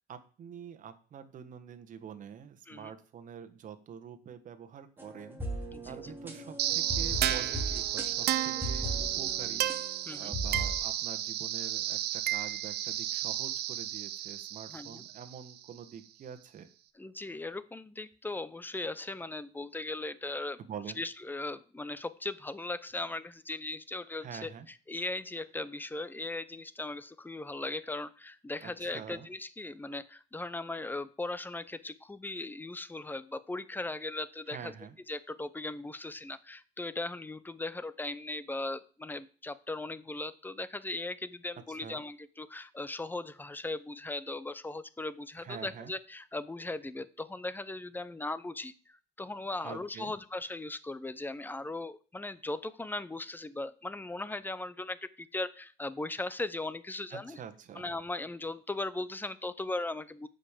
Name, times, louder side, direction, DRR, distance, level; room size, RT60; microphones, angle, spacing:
voice 1, 0.1-16.7 20.6-21.0 24.2-24.7 28.6-29.3 34.5-34.9 41.7-42.0 45.4-45.9 49.6-50.1 57.1-57.9, right 7 dB, 50° right, 9 dB, 1.4 m, -46 dB
sound 1, 5.0-10.8, right 1 dB, 10° right, 2.2 m, -38 dB
voice 2, 5.7-6.1 10.1-10.3 14.7-15.0 17.0-20.6 21.0-24.5 24.9-34.7 35.1-57.4 57.8-60.3, left 2 dB, 10° left, 16 dB, 0.6 m, -38 dB
sound 2, 6.6-15.6, right 13 dB, 75° right, 0.8 m, -32 dB
8.4 x 5.5 x 7.2 m, 0.40 s
cardioid pair, 110°, 17 cm